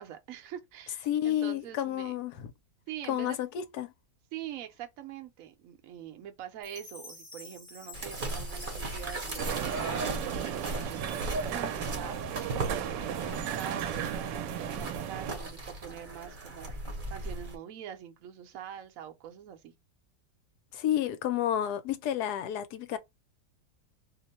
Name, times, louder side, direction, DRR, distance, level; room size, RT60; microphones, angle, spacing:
voice 1, 0.0-2.2 2.9-3.4 4.3-16.7 17.1-19.7, right 10 dB, 60° right, 1.0 m, -44 dB
voice 2, 1.1-2.5 3.1-3.9 20.7-23.0, left 11 dB, 75° left, 1.1 m, -30 dB
Chime, 6.6-11.0, left 2 dB, 25° left, 0.6 m, -50 dB
sound 1, 7.9-17.6, right 2 dB, 40° right, 0.9 m, -37 dB
sound 2, 9.4-15.3, right 9 dB, 85° right, 1.2 m, -35 dB
2.9 x 2.1 x 4.0 m
omnidirectional pair, 1.8 m